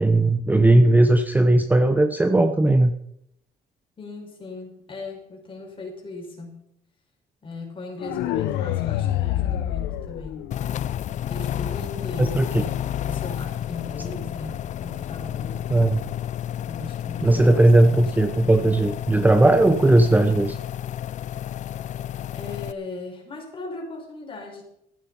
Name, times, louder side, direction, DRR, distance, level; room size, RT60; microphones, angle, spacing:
voice 1, 0.0-2.9 12.2-12.6 15.7-16.0 17.2-20.6, right 2 dB, 10° right, 9 dB, 0.8 m, -17 dB
voice 2, 4.0-6.7 7.4-10.5 11.2-15.7 16.7-18.0 22.3-24.6, left 3 dB, 30° left, 1 dB, 5.3 m, -38 dB
sound 1, 8.0-11.0, left 12 dB, 85° left, 1.0 m, -26 dB
sound 2, 10.5-22.7, left 11 dB, 45° left, 0.5 m, -31 dB
14.5 x 11.0 x 5.4 m, 0.76 s
cardioid pair, 110°, 17 cm